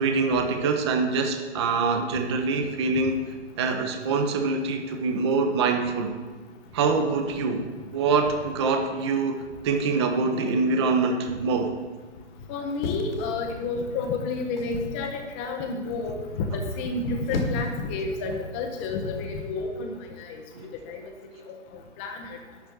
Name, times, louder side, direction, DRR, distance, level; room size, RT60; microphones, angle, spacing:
voice 1, 0.0-3.2 3.6-6.1 6.7-7.6 7.9-11.7 20.5-20.7, right 4 dB, 25° right, 6 dB, 0.7 m, -24 dB
voice 2, 12.5-16.1 16.5-19.9 20.2-20.4 20.9-21.1 22.0-22.4, left 3 dB, 10° left, 4 dB, 0.6 m, -30 dB
sound 1, 12.8-13.8 14.6-15.0 16.9-17.8 18.8-19.1, left 2 dB, 55° left, 1.5 m, -33 dB
12.0 x 4.3 x 8.2 m, 1.4 s
figure-of-eight pair, 135°, 35 cm